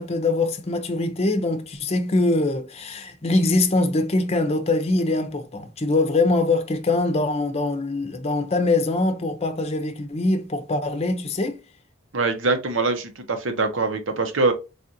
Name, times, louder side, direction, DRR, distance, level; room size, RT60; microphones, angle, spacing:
voice 1, 0.0-11.6, left 2 dB, 30° left, 0.6 m, -23 dB
voice 2, 12.1-14.5, right 3 dB, 70° right, 0.8 m, -23 dB
4.8 x 2.5 x 2.7 m
head